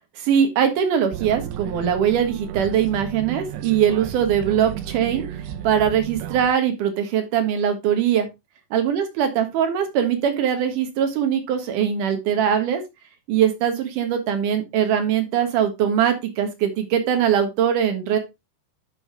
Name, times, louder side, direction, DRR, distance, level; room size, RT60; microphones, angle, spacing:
voice 1, 0.2-5.2 5.6-8.3 8.7-12.8 13.3-18.2, right 8 dB, 60° right, 6 dB, 2.6 m, -21 dB
sound 1, 1.1-6.5, right 10 dB, 85° right, 3.0 m, -33 dB
11.0 x 6.4 x 2.2 m, 0.22 s
omnidirectional pair, 4.7 m